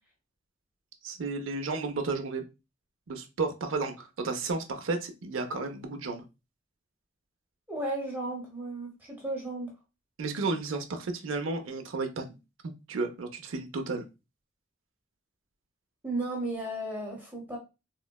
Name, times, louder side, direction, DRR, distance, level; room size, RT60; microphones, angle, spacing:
voice 1, 1.0-2.4 3.1-6.2 10.2-12.2 12.6-14.0, right 3 dB, 75° right, 6 dB, 0.5 m, -32 dB
voice 2, 7.7-9.7 16.0-17.6, right 2 dB, 10° right, -1 dB, 0.7 m, -34 dB
3.7 x 2.1 x 2.2 m, 0.27 s
head